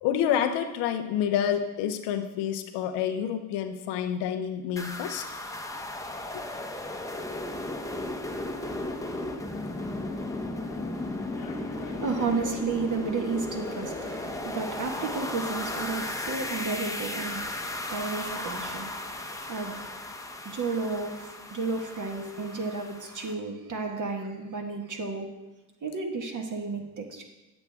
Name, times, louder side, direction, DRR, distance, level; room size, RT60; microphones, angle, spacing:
voice 1, 0.0-5.3 6.3-6.4, left 9 dB, 90° left, 7 dB, 0.7 m, -28 dB
sound 1, 4.8-23.3, left 1 dB, 10° left, 0.9 m, -35 dB
sound 2, 8.6-14.5, left 6 dB, 65° left, 1.1 m, -45 dB
voice 2, 11.8-17.5 17.9-19.9 20.4-25.3 25.8-27.3, right 4 dB, 50° right, 2 dB, 1.6 m, -32 dB
8.0 x 7.9 x 3.5 m, 1.1 s
supercardioid pair, 60°, 40 cm